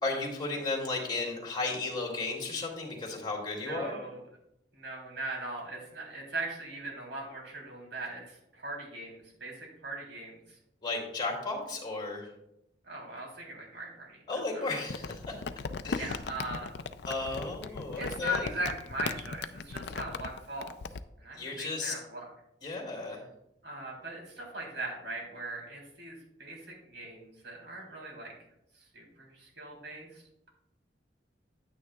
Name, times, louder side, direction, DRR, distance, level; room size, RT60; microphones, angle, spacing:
voice 1, 0.0-3.9 10.8-12.3 14.3-15.4 15.8-16.1 17.0-18.5 21.3-21.9 22.6-23.2, left 3 dB, 25° left, -2 dB, 2.4 m, -34 dB
voice 2, 3.6-4.2 4.7-10.6 12.8-14.6 15.9-16.7 18.0-20.7 21.2-22.3 23.6-28.3 28.9-30.5, right 1 dB, 85° right, -2 dB, 3.4 m, -39 dB
Crumpling crinkling, 14.9-21.0, left 4 dB, 65° left, 0.4 m, -38 dB
9.6 x 9.3 x 2.3 m, 0.82 s
head